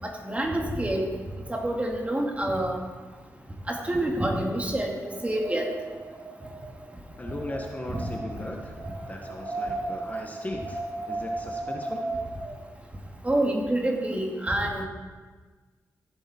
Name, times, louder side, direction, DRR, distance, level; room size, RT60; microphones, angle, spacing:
voice 1, 0.0-1.0 1.5-2.8 3.7-5.7 7.9-8.0 13.2-14.8, right 1 dB, 20° right, 0 dB, 2.4 m, -27 dB
Wind, 4.7-12.6, right 2 dB, 75° right, 2.9 m, -36 dB
voice 2, 7.2-8.7 9.1-10.8 11.0-12.1, left 1 dB, 25° left, 1 dB, 1.4 m, -37 dB
15.5 x 7.9 x 4.4 m, 1.4 s
cardioid pair, 65°, 6 cm